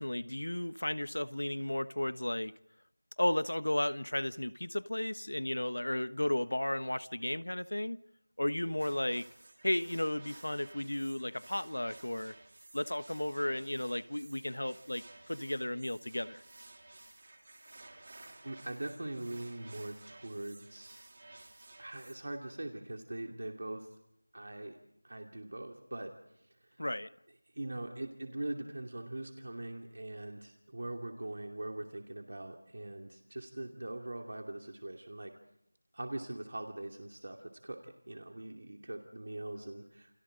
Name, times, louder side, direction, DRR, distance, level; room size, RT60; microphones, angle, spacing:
voice 1, 0.0-2.5 3.2-8.0 8.4-9.3 9.6-12.3 12.7-16.4 26.8-27.1, left 1 dB, 80° left, 14 dB, 1.2 m, -34 dB
sound 1, 8.8-22.2, right 2 dB, 30° right, 3.2 m, -55 dB
voice 2, 18.4-21.0 21.8-23.9 24.3-24.8 25.0-26.8 27.5-35.3 35.9-40.1, right 1 dB, 50° right, 3 dB, 2.6 m, -42 dB
29.0 x 28.5 x 3.9 m, 0.80 s
figure-of-eight pair, 175°, 0 cm